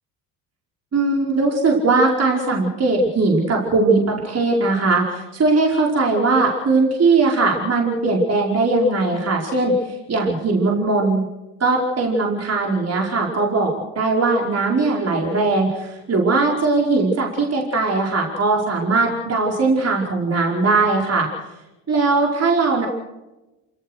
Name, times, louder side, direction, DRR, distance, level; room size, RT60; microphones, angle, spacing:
voice 1, 0.9-11.3 11.6-21.3 21.9-22.9, right 3 dB, 35° right, -1 dB, 5.1 m, -19 dB
28.5 x 18.0 x 6.5 m, 1.0 s
hypercardioid pair, 70°, 44 cm